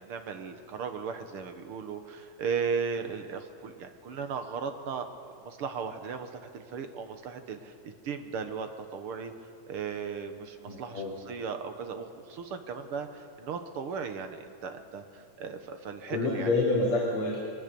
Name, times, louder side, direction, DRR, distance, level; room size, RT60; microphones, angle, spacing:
voice 1, 0.0-9.3 9.7-16.5, right 6 dB, 55° right, 7 dB, 1.8 m, -36 dB
voice 2, 10.6-11.2 16.1-17.4, left 2 dB, 45° left, -5 dB, 3.8 m, -28 dB
22.5 x 19.5 x 6.9 m, 2.3 s
omnidirectional pair, 3.4 m